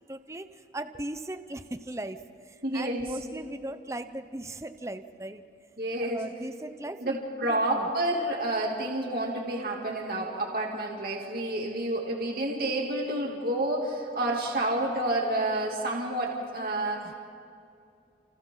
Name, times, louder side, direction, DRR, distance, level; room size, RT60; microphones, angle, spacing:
voice 1, 0.0-5.4 6.1-7.2 7.4-7.9, right 1 dB, 15° right, 10 dB, 0.7 m, -38 dB
voice 2, 2.6-3.1 5.8-6.2 7.0-17.2, right 1 dB, 55° right, -1 dB, 2.9 m, -29 dB
30.0 x 29.0 x 4.0 m, 2.6 s
head